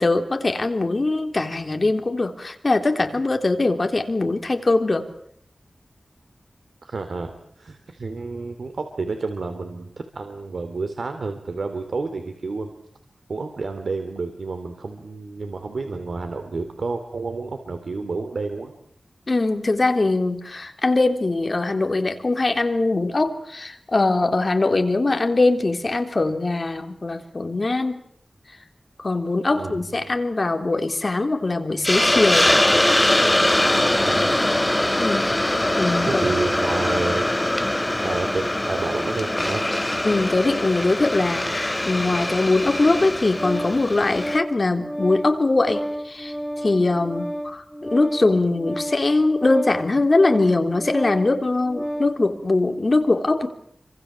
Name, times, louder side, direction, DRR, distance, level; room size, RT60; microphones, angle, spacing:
voice 1, 0.0-5.1 19.3-28.0 29.0-32.5 35.0-36.4 40.0-53.5, left 2 dB, 45° left, 6 dB, 3.5 m, -22 dB
voice 2, 6.8-12.7 13.3-18.7 29.5-30.2 34.0-34.9 36.0-37.3 38.0-39.7, right 3 dB, 90° right, 7 dB, 2.9 m, -30 dB
Hiss, 31.8-44.4, left 1 dB, 15° left, 1.5 m, -22 dB
Organ, 43.2-52.2, equal, ahead, 1.9 m, -32 dB
28.5 x 26.0 x 7.5 m, 0.67 s
wide cardioid pair, 95°, 0 cm